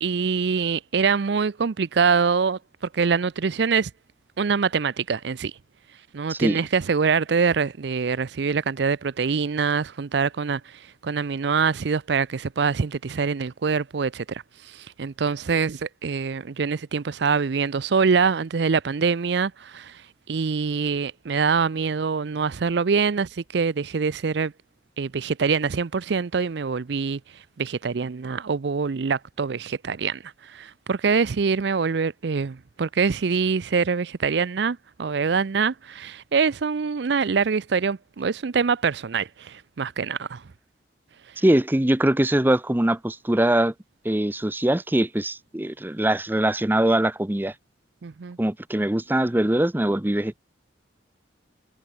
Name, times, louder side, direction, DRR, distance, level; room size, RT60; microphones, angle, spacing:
voice 1, 0.0-2.6 2.9-3.9 4.4-5.5 6.1-10.6 11.0-14.4 14.7-19.9 20.3-24.5 25.0-27.2 27.6-30.2 30.5-40.4 48.0-48.4, right 5 dB, 65° right, 0.5 m, -24 dB
voice 2, 6.3-6.6 41.4-43.7 44.0-47.5 48.4-50.4, right 1 dB, 10° right, 0.6 m, -22 dB
head